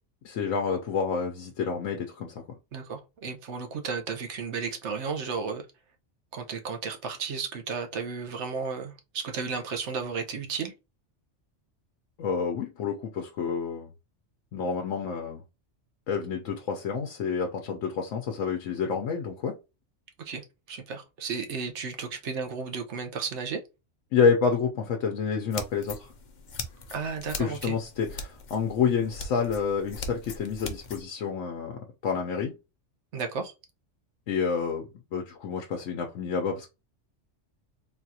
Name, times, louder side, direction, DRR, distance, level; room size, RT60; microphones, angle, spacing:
voice 1, 0.3-2.4 12.2-13.9 14.5-15.4 16.1-19.6 24.1-26.1 27.4-32.5 34.3-34.8 35.1-36.7, left 6 dB, 80° left, 1.0 m, -28 dB
voice 2, 2.7-5.6 6.3-10.7 20.2-20.4 20.7-23.6 26.9-27.8 33.1-33.5, right 5 dB, 70° right, 1.0 m, -33 dB
sound 1, 25.5-31.0, left 3 dB, 50° left, 0.6 m, -40 dB
4.0 x 2.4 x 2.8 m
omnidirectional pair, 1.3 m